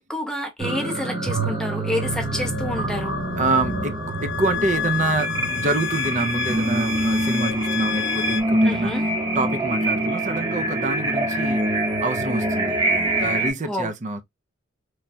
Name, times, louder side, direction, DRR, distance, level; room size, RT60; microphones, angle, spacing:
voice 1, 0.0-3.1 8.6-9.0 13.7-13.9, left 1 dB, 5° left, 0.7 m, -28 dB
sound 1, 0.6-13.5, right 1 dB, 20° right, 0.9 m, -25 dB
sound 2, 2.0-8.4, left 10 dB, 65° left, 0.4 m, -30 dB
voice 2, 3.4-11.6 12.0-12.8 13.2-14.2, right 2 dB, 40° right, 0.5 m, -26 dB
3.2 x 2.3 x 2.6 m
head